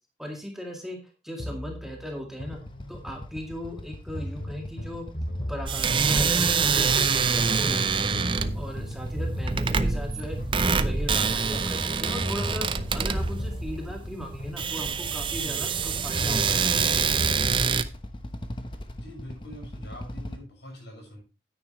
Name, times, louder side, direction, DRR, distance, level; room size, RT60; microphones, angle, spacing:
voice 1, 0.2-1.0 1.2-2.6 2.9-5.1 5.5-8.1 8.5-10.4 10.7-17.2, equal, ahead, 1 dB, 2.0 m, -37 dB
sound 1, 1.4-3.3 4.1-7.2 8.1-11.2 12.1-15.2 16.1-17.5, equal, 55° left, 2.6 m, -37 dB
Motorcycle / Idling, 2.5-20.4, left 1 dB, 30° left, 1.0 m, -41 dB
sound 2, 5.7-17.8, right 5 dB, 30° right, 0.5 m, -26 dB
voice 2, 18.9-21.2, equal, 80° left, -1 dB, 6.6 m, -43 dB
9.8 x 9.4 x 3.2 m, 0.31 s
head